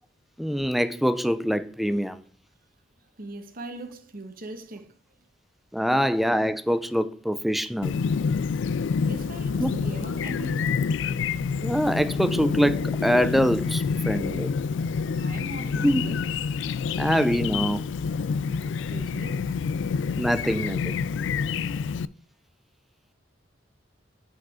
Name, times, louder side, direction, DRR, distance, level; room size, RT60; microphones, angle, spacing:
voice 1, 0.4-2.2 5.7-7.9 9.6-9.7 11.6-14.5 15.8-16.0 17.0-17.8 20.2-20.9, equal, ahead, 0.4 m, -24 dB
voice 2, 3.2-5.0 8.8-10.7 15.1-16.3 18.6-19.6, right 2 dB, 50° right, 1.1 m, -40 dB
Chirp tweet, 7.8-22.1, left 5 dB, 70° left, 0.3 m, -28 dB
6.1 x 5.0 x 5.0 m
head